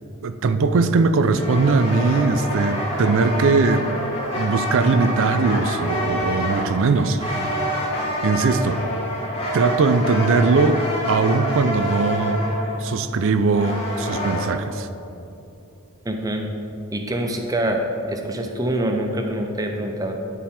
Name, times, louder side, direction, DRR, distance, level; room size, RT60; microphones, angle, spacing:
voice 1, 0.2-3.9 4.4-7.3 8.2-8.8 9.5-12.4 12.8-14.9, right 4 dB, 60° right, 10 dB, 0.4 m, -20 dB
sound 1, 1.3-14.5, equal, 25° left, 1.1 m, -27 dB
voice 2, 16.0-16.4 16.9-17.8 18.1-20.1, right 1 dB, 15° right, 3 dB, 0.6 m, -25 dB
10.0 x 4.5 x 4.3 m, 2.9 s
head